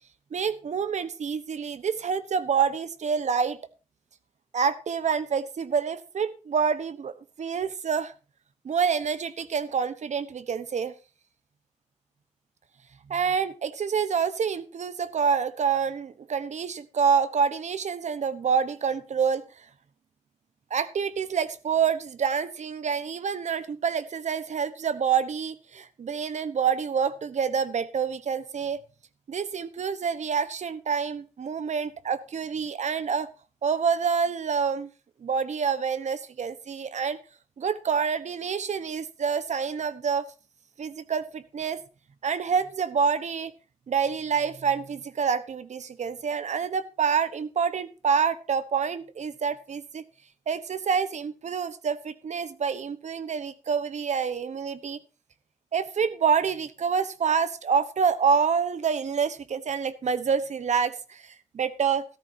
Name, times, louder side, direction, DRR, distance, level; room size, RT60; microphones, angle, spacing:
voice 1, 0.3-3.6 4.5-8.1 8.6-10.9 13.1-19.6 20.7-28.8 29.3-33.3 33.6-34.9 35.2-37.2 37.6-40.3 40.8-41.8 42.2-43.5 43.9-50.0 50.5-55.0 55.7-62.0, right 6 dB, 70° right, 14 dB, 1.1 m, -27 dB
14.0 x 13.0 x 2.8 m, 0.33 s
wide cardioid pair, 105°, 12 cm